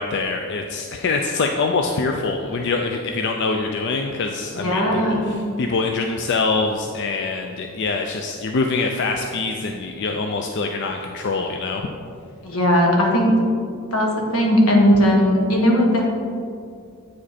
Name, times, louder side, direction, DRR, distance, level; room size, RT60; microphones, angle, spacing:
voice 1, 0.0-11.8, left 3 dB, 55° left, 3 dB, 0.4 m, -24 dB
voice 2, 4.5-5.3 12.4-13.3 13.9-16.1, equal, 85° left, 0 dB, 1.4 m, -17 dB
8.3 x 5.1 x 4.2 m, 2.3 s
head